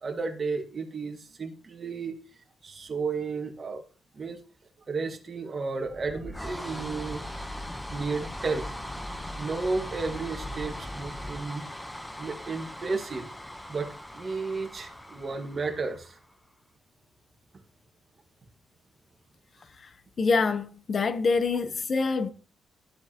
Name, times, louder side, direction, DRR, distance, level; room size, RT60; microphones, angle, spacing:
voice 1, 0.0-2.2 2.6-3.8 4.1-4.4 4.9-7.3 7.9-8.7 9.4-11.6 12.2-13.3 13.7-16.2, right 4 dB, 35° right, 1.7 m, -33 dB
sound 1, 5.8-16.3, left 1 dB, 5° left, 0.9 m, -39 dB
voice 2, 20.2-22.3, left 4 dB, 45° left, 0.9 m, -25 dB
12.0 x 7.9 x 2.9 m
cardioid pair, 120°, 0 cm